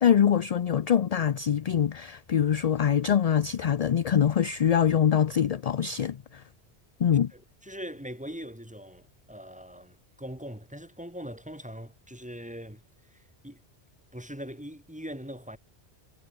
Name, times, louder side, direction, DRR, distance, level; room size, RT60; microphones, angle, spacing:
voice 1, 0.0-6.4 7.0-7.3, left 8 dB, 50° left, 0.5 m, -24 dB
voice 2, 7.3-13.6 14.1-15.6, equal, 5° right, 2.5 m, -41 dB
omnidirectional pair, 1.1 m